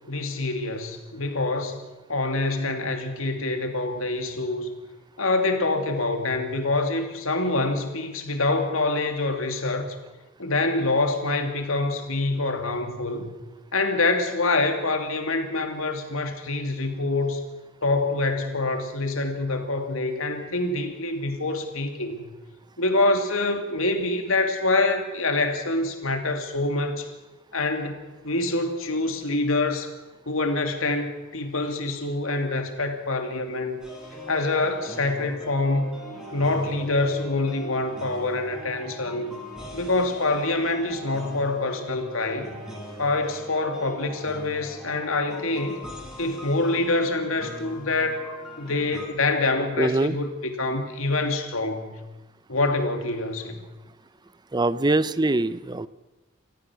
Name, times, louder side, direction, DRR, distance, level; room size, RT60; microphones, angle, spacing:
voice 1, 0.1-1.8 2.1-4.7 5.2-9.9 10.4-13.3 13.7-17.4 17.8-22.3 22.8-27.1 27.5-29.9 30.3-33.8 34.3-35.9 36.3-39.4 39.7-42.6 43.0-45.8 46.2-48.2 48.6-52.0 52.5-53.6, left 2 dB, 80° left, 5 dB, 2.7 m, -26 dB
sound 1, 33.8-49.1, equal, 5° right, 5.0 m, -41 dB
voice 2, 49.8-50.1 54.5-55.9, right 2 dB, 20° right, 16 dB, 0.6 m, -23 dB
28.0 x 14.5 x 6.3 m, 1.1 s
head